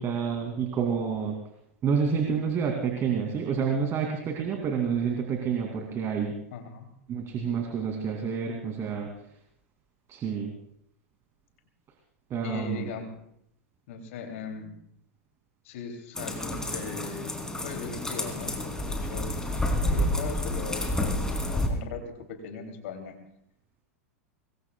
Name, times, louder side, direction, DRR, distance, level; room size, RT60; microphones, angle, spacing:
voice 1, 0.0-1.4 1.8-6.3 7.1-9.1 10.1-10.5 12.3-12.9, right 6 dB, 35° right, 2 dB, 2.7 m, -28 dB
voice 2, 6.5-6.9 12.4-13.2 13.9-14.8 15.6-17.2 17.6-19.4 19.8-23.1, left 5 dB, 65° left, 5 dB, 2.9 m, -39 dB
sound 1, 16.1-21.7, left 1 dB, 10° left, 3.2 m, -29 dB
25.0 x 22.0 x 2.4 m, 0.73 s
hypercardioid pair, 100°, 8 cm